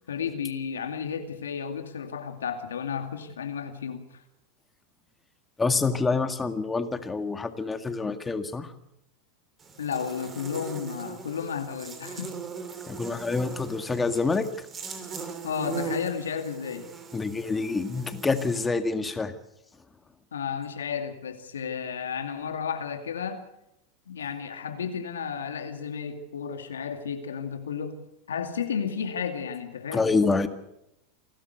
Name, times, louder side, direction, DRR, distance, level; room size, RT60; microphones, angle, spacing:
voice 1, 0.1-4.2 9.8-12.3 15.4-16.9 19.0-19.1 20.3-23.4 24.1-28.0 28.3-30.1, left 7 dB, 85° left, 2.3 m, -33 dB
voice 2, 5.6-8.7 12.9-14.7 17.1-19.3 29.9-30.5, left 4 dB, 15° left, 2.0 m, -27 dB
Buzz, 9.6-18.7, right 4 dB, 30° right, 3.5 m, -40 dB
28.0 x 12.5 x 8.0 m
hypercardioid pair, 95°, 0 cm